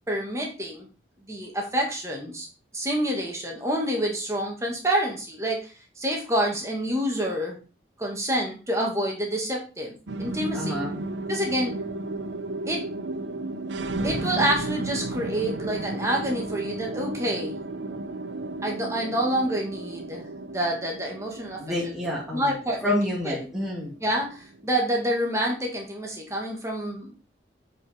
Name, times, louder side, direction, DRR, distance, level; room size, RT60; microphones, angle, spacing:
voice 1, 0.1-0.9 1.3-2.5 2.7-7.6 8.0-9.9 10.2-10.8 11.3-11.7 12.7-12.9 14.0-17.6 18.6-20.3 20.5-21.6 22.3-22.9 23.2-23.3 24.0-27.2, right 1 dB, 15° right, 0 dB, 1.9 m, -27 dB
sound 1, 10.1-24.7, right 2 dB, 80° right, 0.8 m, -34 dB
voice 2, 10.5-11.0 21.6-22.5 22.8-23.9, left 1 dB, ahead, -5 dB, 1.6 m, -28 dB
8.1 x 5.1 x 4.4 m, 0.34 s
head